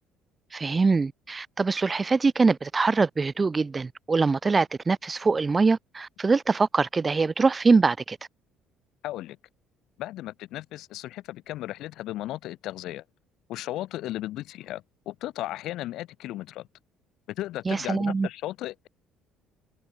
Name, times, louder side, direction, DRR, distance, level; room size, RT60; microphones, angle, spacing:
voice 1, 0.5-8.2 17.6-18.3, right 4 dB, 20° right, 3.2 m, -23 dB
voice 2, 9.0-9.4 10.0-13.0 13.5-16.7 17.3-18.9, left 15 dB, 70° left, 7.2 m, -35 dB
cardioid pair, 135°, 0 cm